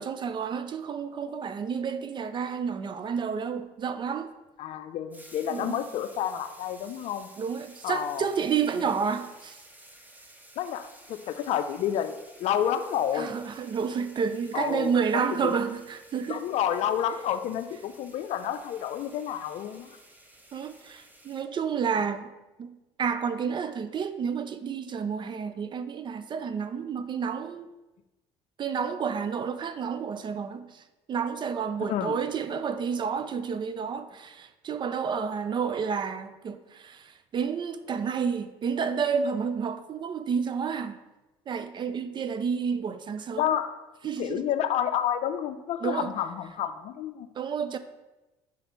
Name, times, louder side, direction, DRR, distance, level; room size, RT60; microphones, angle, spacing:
voice 1, 0.0-4.3 5.5-5.8 7.4-9.6 13.2-16.4 20.5-22.3 22.6-27.7 28.6-30.8 31.1-41.0 41.5-43.5 44.0-44.4 45.8-46.1 47.4-47.8, right 6 dB, 40° right, 0.4 m, -30 dB
voice 2, 4.6-7.3 7.8-8.3 10.6-13.4 14.5-15.5 16.3-20.0 31.9-32.2 43.4-43.9 44.2-47.3, left 10 dB, 60° left, 0.5 m, -30 dB
sound 1, 5.1-21.4, right 1 dB, 15° right, 1.0 m, -53 dB
5.0 x 4.2 x 5.2 m
supercardioid pair, 90°, 12 cm